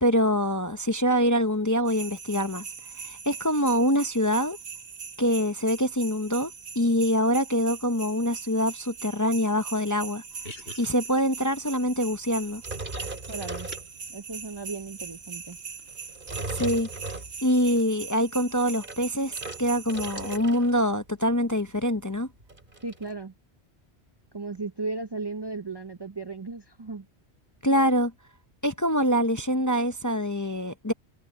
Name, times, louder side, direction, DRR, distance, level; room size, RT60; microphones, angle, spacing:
voice 1, 0.0-2.6 3.0-4.6 5.2-6.5 6.8-10.2 10.8-12.6 16.5-16.9 17.4-22.3 27.6-28.1 28.6-30.9, equal, 20° left, 0.6 m, -25 dB
sound 1, 1.9-20.4, right 5 dB, 75° right, 1.6 m, -41 dB
sound 2, 10.3-17.8, left 1 dB, 65° left, 6.0 m, -52 dB
sound 3, 12.6-14.3 14.9-15.1 15.9-17.7 18.5-20.8 21.0-21.4 21.7-21.8 22.0-23.1, right 2 dB, 50° right, 3.1 m, -37 dB
voice 2, 13.3-13.7 14.1-15.6 22.8-23.3 24.3-27.1, right 3 dB, 30° right, 0.6 m, -35 dB
omnidirectional pair, 1.1 m